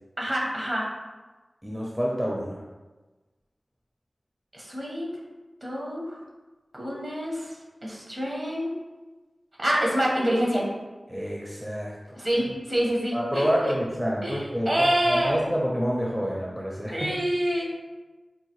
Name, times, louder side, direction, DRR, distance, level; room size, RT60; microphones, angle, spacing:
voice 1, 0.2-0.9 4.5-5.1 5.6-6.2 6.7-8.8 9.6-10.7 12.2-13.5 14.2-15.4 16.9-17.6, equal, 45° right, -3 dB, 1.0 m, -27 dB
voice 2, 1.6-2.6 11.1-12.2 13.1-17.1, equal, 10° right, -3 dB, 0.5 m, -28 dB
4.7 x 2.5 x 3.0 m, 1.2 s
wide cardioid pair, 75°, 0 cm